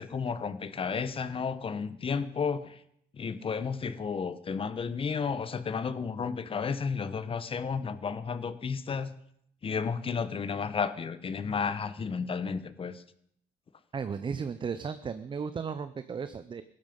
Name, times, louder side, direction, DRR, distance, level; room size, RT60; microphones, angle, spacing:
voice 1, 0.0-2.8 3.1-9.1 9.6-13.0, left 5 dB, 35° left, 14 dB, 1.1 m, -32 dB
voice 2, 13.9-16.6, right 6 dB, 30° right, 12 dB, 0.7 m, -35 dB
16.0 x 12.0 x 5.3 m, 0.69 s
cardioid pair, 110°, 17 cm